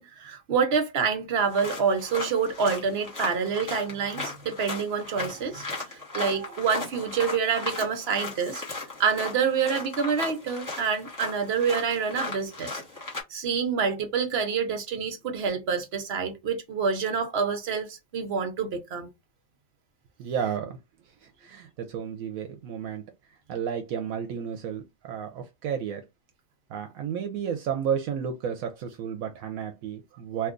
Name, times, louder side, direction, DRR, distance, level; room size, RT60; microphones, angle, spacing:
voice 1, 0.0-8.6 9.0-12.8 13.3-19.1, right 6 dB, 55° right, 0.9 m, -27 dB
sound 1, 1.4-13.2, left 3 dB, 15° left, 0.9 m, -37 dB
voice 2, 20.2-20.8 21.2-23.0 23.5-26.0 26.7-30.5, right 8 dB, 85° right, 1.0 m, -32 dB
2.9 x 2.3 x 3.7 m
omnidirectional pair, 1.4 m